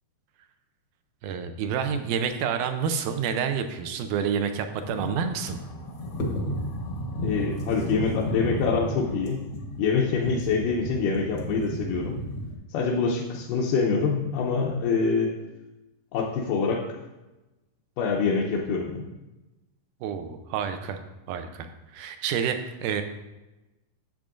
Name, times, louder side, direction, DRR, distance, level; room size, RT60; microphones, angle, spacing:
voice 1, 1.2-5.6 20.0-21.0 21.3-21.7 21.9-23.0, right 7 dB, 80° right, 8 dB, 2.1 m, -28 dB
sound 1, 4.8-12.6, equal, 60° left, 1.1 m, -33 dB
voice 2, 7.2-9.4 9.8-12.2 12.7-15.4 16.1-16.8 18.0-19.1, left 5 dB, 85° left, -3 dB, 2.4 m, -25 dB
10.5 x 7.6 x 2.5 m, 1.0 s
omnidirectional pair, 3.8 m